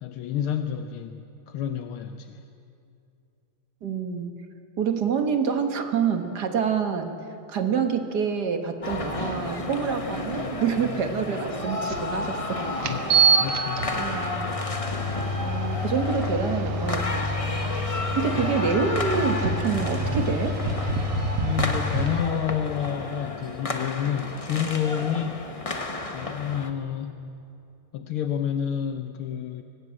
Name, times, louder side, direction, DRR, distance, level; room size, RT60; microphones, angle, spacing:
voice 1, 0.0-2.4 12.8-14.1 18.3-18.5 21.4-25.5 26.1-27.2 27.9-29.6, left 9 dB, 75° left, 8 dB, 1.7 m, -29 dB
voice 2, 3.8-4.3 4.8-7.1 7.5-12.7 14.0-14.4 15.4-20.6, right 6 dB, 50° right, 6 dB, 2.0 m, -27 dB
sound 1, 8.8-26.7, left 2 dB, 20° left, 0.9 m, -32 dB
sound 2, 11.9-12.0 12.8-22.2, right 2 dB, 85° right, 2.3 m, -27 dB
23.5 x 19.5 x 8.8 m, 2.7 s
omnidirectional pair, 2.4 m